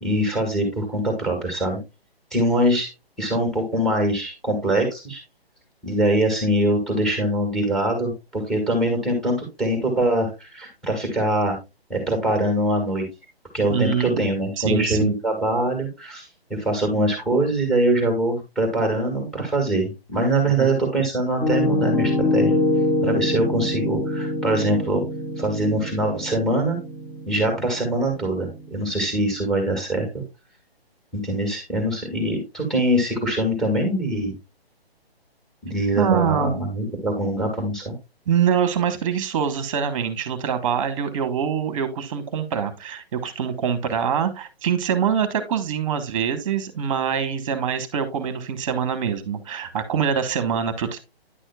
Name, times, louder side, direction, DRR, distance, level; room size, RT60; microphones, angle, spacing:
voice 1, 0.0-1.8 2.3-2.9 3.2-5.2 5.8-11.6 11.9-13.0 13.5-22.6 23.0-25.0 25.4-26.8 27.3-30.1 31.1-34.3 35.6-37.9, right 1 dB, ahead, 4 dB, 1.7 m, -23 dB
voice 2, 13.7-14.2 14.6-15.1 20.4-20.7 36.0-36.6 38.3-51.0, right 7 dB, 30° right, 12 dB, 1.2 m, -24 dB
Piano, 21.4-29.3, left 2 dB, 35° left, 3.4 m, -25 dB
10.0 x 6.3 x 2.3 m, 0.24 s
figure-of-eight pair, 150°, 31 cm